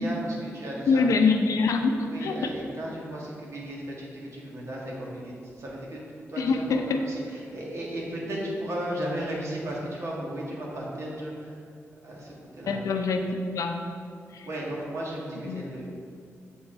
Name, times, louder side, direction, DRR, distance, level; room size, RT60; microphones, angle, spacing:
voice 1, 0.0-1.1 2.1-11.6 12.0-12.9 14.4-15.9, right 1 dB, 65° right, -4 dB, 1.8 m, -35 dB
voice 2, 0.9-2.5 6.4-7.0 12.7-13.8 14.3-14.5 15.5-15.6, left 4 dB, 90° left, 4 dB, 0.6 m, -25 dB
7.0 x 5.4 x 4.5 m, 2.3 s
cardioid pair, 90°, 5 cm